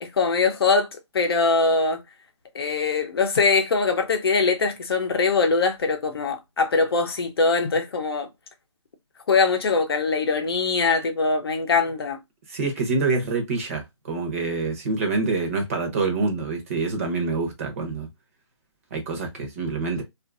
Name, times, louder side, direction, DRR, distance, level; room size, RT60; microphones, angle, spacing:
voice 1, 0.0-0.9 1.1-2.0 2.5-8.3 9.3-12.2, left 4 dB, 55° left, 0.7 m, -22 dB
voice 2, 12.5-18.1 18.9-20.0, right 3 dB, 30° right, 0.8 m, -26 dB
2.6 x 2.5 x 2.4 m
hypercardioid pair, 165°, 16 cm